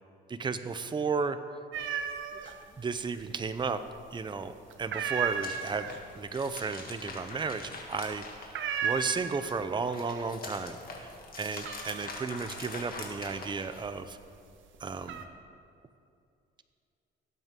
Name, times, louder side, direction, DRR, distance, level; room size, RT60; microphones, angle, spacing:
voice 1, 0.3-1.4 2.4-3.8 4.1-5.8 6.2-11.1 11.4-14.2 14.8-15.2, right 5 dB, 25° right, 11 dB, 0.6 m, -34 dB
sound 1, 1.7-2.5 2.9-3.6 4.0-4.4 4.7-9.8 10.1-10.7 11.0-14.1 14.6-15.2, right 7 dB, 75° right, 1.0 m, -35 dB
sound 2, 4.9-9.0 9.4-14.0, left 3 dB, 45° left, 2.0 m, -44 dB
17.5 x 8.1 x 3.7 m, 2.5 s
cardioid pair, 90°, 20 cm